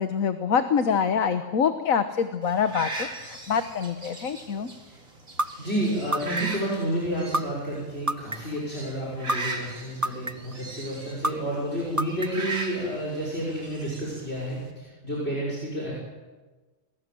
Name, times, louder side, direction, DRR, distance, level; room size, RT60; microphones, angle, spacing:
voice 1, 0.0-4.7, left 7 dB, 85° left, 9 dB, 1.5 m, -25 dB
sound 1, 2.4-14.7, right 3 dB, 80° right, 3.7 m, -39 dB
sound 2, 5.4-5.5 6.1-6.6 7.3-7.4 8.1-8.6 9.3-9.4 10.0-10.5 11.2-11.3 12.0-12.5, right 1 dB, 20° right, 0.5 m, -25 dB
voice 2, 5.6-15.9, right 1 dB, 50° left, -4 dB, 6.0 m, -30 dB
28.5 x 20.5 x 7.7 m, 1.3 s
omnidirectional pair, 1.4 m